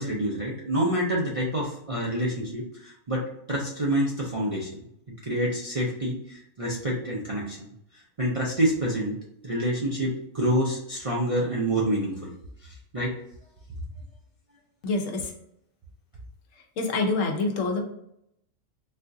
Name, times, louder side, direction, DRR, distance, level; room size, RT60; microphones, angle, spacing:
voice 1, 0.0-4.8 5.2-7.7 8.2-9.1 9.4-12.3 12.6-13.1, right 1 dB, 45° right, -4 dB, 0.4 m, -27 dB
voice 2, 14.8-15.3 16.8-17.8, left 3 dB, 75° left, 2 dB, 1.1 m, -26 dB
4.2 x 2.4 x 2.6 m, 0.76 s
omnidirectional pair, 1.4 m